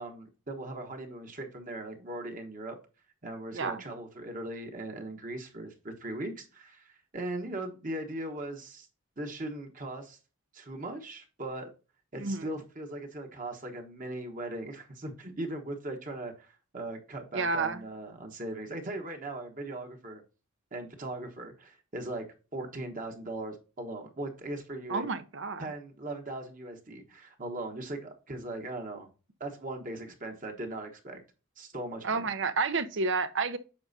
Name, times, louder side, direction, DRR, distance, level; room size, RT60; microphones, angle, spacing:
voice 1, 0.0-2.8 3.2-8.9 9.2-10.2 10.5-11.7 12.1-20.2 20.7-22.2 22.5-25.1 25.6-29.1 29.4-31.2 31.6-32.3, right 1 dB, 40° right, 1.2 m, -39 dB
voice 2, 3.5-3.8 12.2-12.5 17.3-17.8 24.9-25.7 32.0-33.6, right 4 dB, 60° right, 0.7 m, -30 dB
8.7 x 6.1 x 2.7 m
head